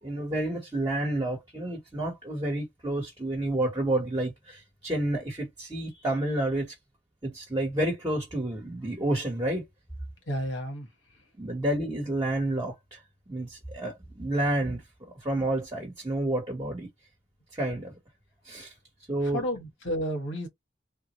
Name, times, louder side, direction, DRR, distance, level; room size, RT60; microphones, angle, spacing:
voice 1, 0.0-6.7 7.2-9.7 11.4-13.0 13.3-16.9 17.5-17.9 18.4-18.7 19.1-19.4, right 1 dB, 20° right, 1.1 m, -30 dB
voice 2, 10.2-11.3 19.2-20.5, equal, 90° left, 1.6 m, -32 dB
3.6 x 2.1 x 3.0 m
head